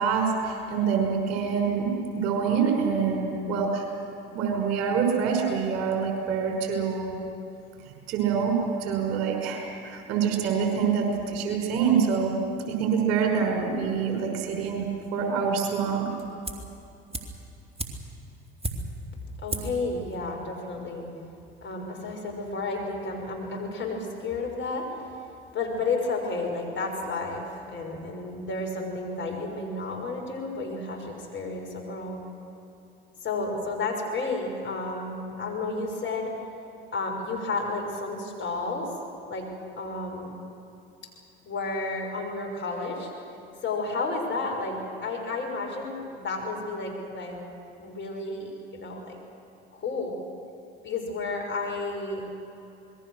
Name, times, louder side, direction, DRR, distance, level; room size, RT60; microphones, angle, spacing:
voice 1, 0.0-3.8 4.3-7.2 8.1-12.3 12.6-14.9 15.1-16.1, right 6 dB, 60° right, 2 dB, 5.7 m, -26 dB
sound 1, 16.4-16.8 17.1-19.1 19.5-19.9 20.1-20.2, right 1 dB, 20° right, 3.0 m, -34 dB
voice 2, 19.4-21.1 21.6-24.9 25.5-32.2 33.2-36.3 36.9-38.9 39.3-39.5 39.8-40.4 41.5-43.1 43.6-47.4 47.7-49.2 49.7-50.1 50.8-52.2, left 3 dB, 40° left, 1 dB, 6.3 m, -32 dB
27.0 x 21.0 x 6.6 m, 2.8 s
hypercardioid pair, 65°, 30 cm